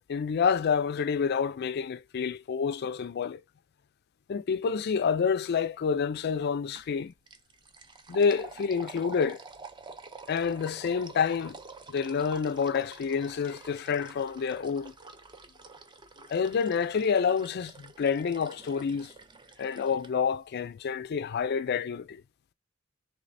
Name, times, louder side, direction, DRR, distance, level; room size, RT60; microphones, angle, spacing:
voice 1, 0.1-3.4 4.3-7.1 8.1-9.4 10.3-11.6 11.9-14.9 16.3-19.1 19.6-22.2, left 6 dB, 50° left, 0.4 m, -28 dB
sound 1, 6.7-7.0 7.3-20.1, right 4 dB, 20° right, 0.5 m, -48 dB
3.2 x 3.2 x 4.0 m
head